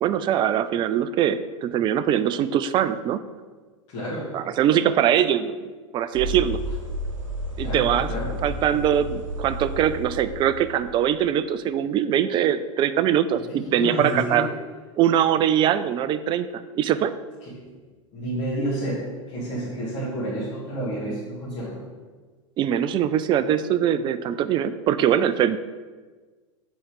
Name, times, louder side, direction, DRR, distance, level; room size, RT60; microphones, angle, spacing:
voice 1, 0.0-3.2 4.3-5.5 5.9-6.6 7.6-8.1 8.4-14.5 15.0-16.5 16.7-17.1 22.6-25.6, right 10 dB, 30° right, 13 dB, 0.4 m, -22 dB
voice 2, 3.9-4.4 7.6-8.5 13.5-14.5 17.5-17.6 18.1-21.8, right 1 dB, 40° left, -9 dB, 2.2 m, -30 dB
sound 1, 6.1-11.4, equal, 75° right, 1.0 m, -32 dB
7.0 x 4.3 x 4.9 m, 1.4 s
figure-of-eight pair, 90°, 17 cm